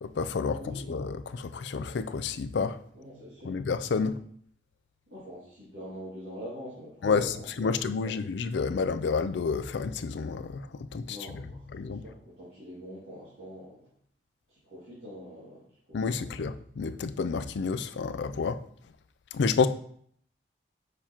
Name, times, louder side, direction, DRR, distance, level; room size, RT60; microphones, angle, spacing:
voice 1, 0.0-2.8 3.4-4.1 7.0-7.3 7.6-10.7 10.9-11.2 11.7-12.0 15.9-18.6 19.3-19.7, left 5 dB, 80° left, 0.4 m, -29 dB
voice 2, 0.5-1.0 2.9-3.6 4.0-4.1 5.1-7.7 8.0-8.1 11.1-13.8 14.5-16.5, equal, 80° right, 2.2 m, -44 dB
6.8 x 5.7 x 2.9 m
head